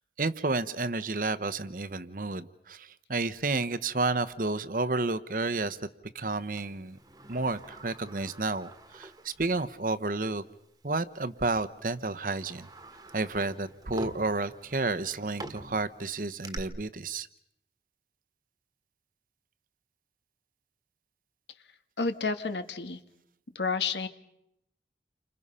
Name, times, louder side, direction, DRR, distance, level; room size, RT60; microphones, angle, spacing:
voice 1, 0.2-5.8 6.1-7.0 7.3-10.4 10.8-12.7 13.1-17.3, right 3 dB, 50° right, 11 dB, 1.0 m, -31 dB
Sliding door, 6.6-9.8 10.2-10.3 11.2-11.4 11.9-16.6, right 1 dB, 20° right, 1.5 m, -46 dB
voice 2, 22.0-23.0 23.5-24.1, left 4 dB, 80° left, 9 dB, 1.6 m, -30 dB
30.0 x 26.0 x 5.6 m, 0.78 s
head